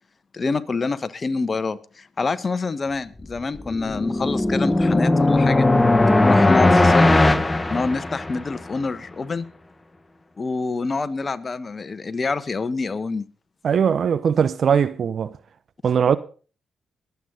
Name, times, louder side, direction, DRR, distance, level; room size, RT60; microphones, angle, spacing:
voice 1, 0.3-5.7 6.2-7.3 7.7-9.5 10.4-13.3, left 4 dB, 45° left, 1.2 m, -26 dB
sound 1, 3.4-8.6, left 2 dB, 20° left, 1.2 m, -18 dB
voice 2, 13.6-15.3 15.8-16.2, right 7 dB, 60° right, 0.7 m, -20 dB
22.5 x 8.3 x 3.9 m
hypercardioid pair, 45°, 0 cm